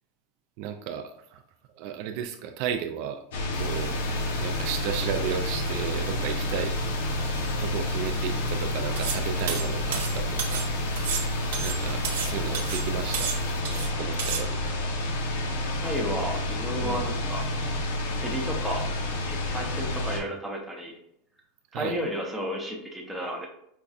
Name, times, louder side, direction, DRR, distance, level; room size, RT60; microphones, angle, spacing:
voice 1, 0.6-1.4 1.8-3.2 3.5-4.0 4.4-6.8 7.6-10.7 11.6-13.4 14.0-14.7 16.8-17.1 21.7-22.0, right 8 dB, 55° right, 6 dB, 0.3 m, -34 dB
sound 1, 3.3-20.2, left 1 dB, 85° left, 0.7 m, -29 dB
sound 2, 3.5-13.6, right 2 dB, 55° left, 1.2 m, -40 dB
sound 3, 9.0-9.2 9.5-10.7 11.0-12.3 12.5-12.9 13.1-13.9 14.2-14.4, right 7 dB, 80° right, 0.7 m, -31 dB
voice 2, 15.8-17.5 18.2-18.8 19.3-20.9 21.7-23.5, equal, ahead, -3 dB, 0.7 m, -32 dB
5.1 x 2.3 x 2.4 m, 0.74 s
supercardioid pair, 155°, 0 cm